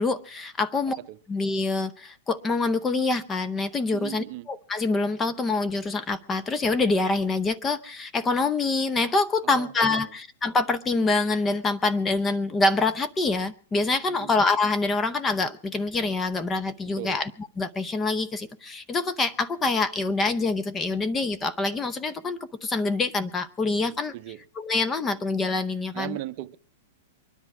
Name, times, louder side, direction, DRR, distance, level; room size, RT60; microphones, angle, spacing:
voice 1, 0.0-1.0 1.3-24.1 24.6-26.2, left 3 dB, 15° left, 0.6 m, -26 dB
voice 2, 3.9-4.5 9.4-10.1 14.1-14.3 17.0-17.2 23.8-24.4 25.9-26.6, right 15 dB, 40° right, 0.7 m, -38 dB
23.5 x 10.5 x 4.7 m
hypercardioid pair, 155°, 0 cm